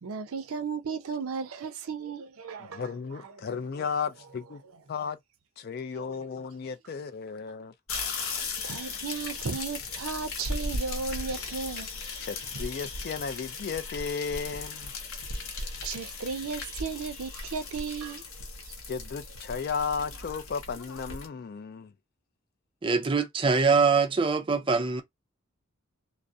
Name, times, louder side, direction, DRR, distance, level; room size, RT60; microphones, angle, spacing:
voice 1, 0.0-3.9 4.7-4.8 5.9-6.5 8.6-11.9 12.1-12.3 15.4-18.2 18.6-18.7, right 5 dB, 75° right, 0.5 m, -36 dB
voice 2, 2.7-4.6 4.9-5.2 5.6-7.7 12.2-14.9 18.9-21.9, left 5 dB, 45° left, 0.3 m, -34 dB
sound 1, 7.9-21.3, left 3 dB, 65° left, 0.7 m, -37 dB
voice 3, 22.8-25.0, right 4 dB, 25° right, 0.4 m, -23 dB
2.3 x 2.0 x 2.6 m
head